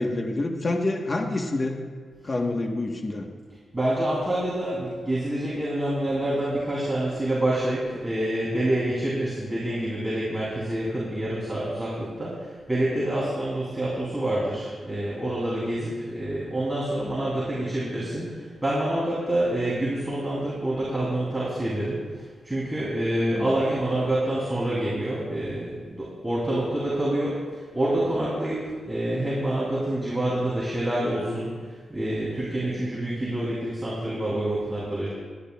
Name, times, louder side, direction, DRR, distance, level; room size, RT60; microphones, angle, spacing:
voice 1, 0.0-1.8 2.2-3.3 23.2-23.5, left 2 dB, 35° left, 3 dB, 1.1 m, -27 dB
voice 2, 3.7-22.0 22.4-35.1, right 1 dB, 15° right, -7 dB, 2.8 m, -27 dB
20.5 x 10.5 x 2.3 m, 1.6 s
cardioid pair, 90°, 0 cm